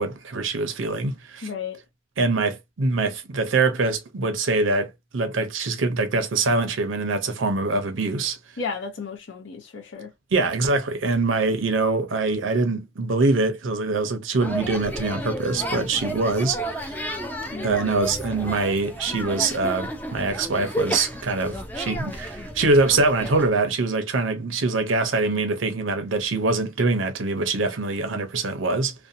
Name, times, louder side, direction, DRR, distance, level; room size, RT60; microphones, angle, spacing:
voice 1, 0.0-1.5 2.2-8.4 10.3-16.9 17.6-28.9, right 3 dB, 80° right, 0.6 m, -24 dB
voice 2, 1.4-1.8 8.6-10.1 17.5-17.8, left 5 dB, 65° left, 0.7 m, -33 dB
sound 1, 14.4-23.5, right 1 dB, 10° left, 0.4 m, -32 dB
2.6 x 2.1 x 2.6 m
head